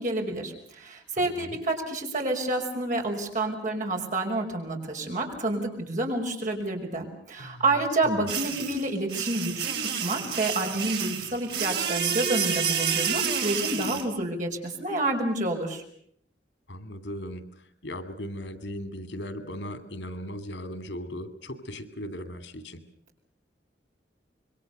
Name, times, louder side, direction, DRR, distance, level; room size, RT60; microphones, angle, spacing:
voice 1, 0.0-9.7 10.0-15.8, right 2 dB, 45° right, 2 dB, 5.6 m, -29 dB
voice 2, 1.2-1.6 7.4-8.3 16.7-22.8, equal, 90° left, 11 dB, 2.7 m, -38 dB
sound 1, 8.3-14.0, right 7 dB, 65° right, 4.1 m, -29 dB
26.5 x 23.0 x 6.8 m, 0.65 s
head